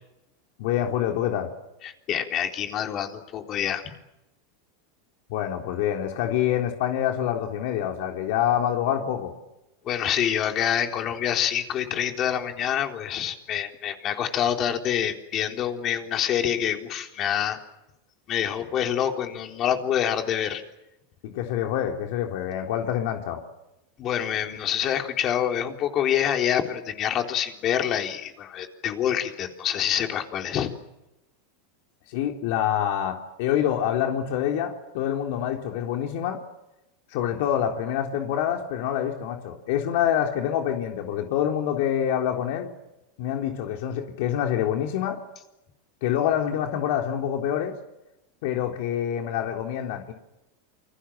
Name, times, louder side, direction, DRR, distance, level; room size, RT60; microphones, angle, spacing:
voice 1, 0.6-1.5 5.3-9.3 21.2-23.4 32.1-36.4 37.1-42.7 43.2-45.2 46.0-47.7 48.4-50.1, left 10 dB, 65° left, 3 dB, 3.5 m, -26 dB
voice 2, 1.8-3.9 9.8-17.6 18.3-20.6 24.0-30.7, left 9 dB, 35° left, 4 dB, 3.8 m, -26 dB
28.5 x 25.5 x 7.5 m, 0.92 s
supercardioid pair, 140°, 0 cm